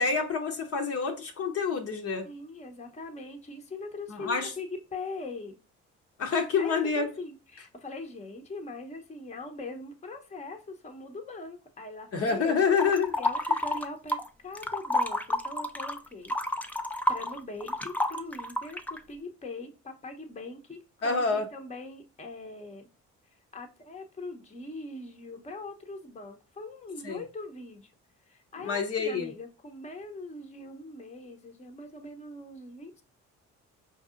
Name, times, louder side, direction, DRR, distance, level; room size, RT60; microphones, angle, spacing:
voice 1, 0.0-2.3 4.1-4.5 6.2-7.1 12.1-13.1 21.0-21.5 27.0-27.2 28.6-29.3, left 5 dB, 50° left, 0.7 m, -27 dB
voice 2, 2.2-5.6 6.6-12.6 13.2-16.6 17.1-22.9 23.5-27.9 28.3-33.0, left 3 dB, 20° left, 0.7 m, -41 dB
sound 1, 12.8-14.3 14.6-19.0, left 1 dB, 5° left, 0.4 m, -29 dB
4.6 x 2.7 x 2.4 m
supercardioid pair, 70°, 30 cm